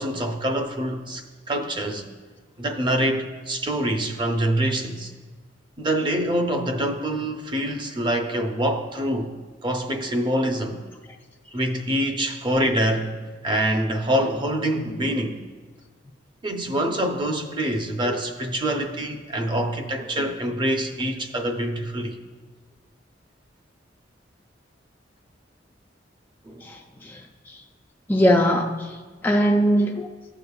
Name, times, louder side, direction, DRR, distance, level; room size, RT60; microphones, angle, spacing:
voice 1, 0.0-2.1 2.6-5.1 5.8-9.3 9.6-10.8 11.5-13.1 13.4-15.4 16.4-22.2 26.5-26.6, right 1 dB, 25° right, 0.7 m, -25 dB
voice 2, 26.6-27.2 28.1-29.0 29.2-30.1, equal, 10° left, 0.3 m, -20 dB
15.5 x 6.6 x 2.3 m
head